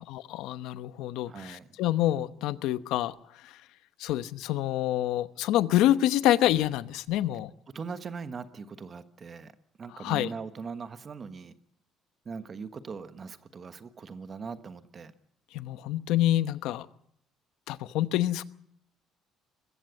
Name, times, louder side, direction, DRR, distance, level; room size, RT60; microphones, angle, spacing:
voice 1, 0.1-3.6 4.0-7.5 9.9-10.3 15.5-16.9 17.7-18.4, left 13 dB, 85° left, 14 dB, 0.9 m, -27 dB
voice 2, 1.3-1.7 7.7-9.5 9.8-11.5 12.2-15.1, right 5 dB, 30° right, 11 dB, 1.2 m, -40 dB
22.5 x 15.0 x 9.4 m, 0.69 s
cardioid pair, 140°, 0 cm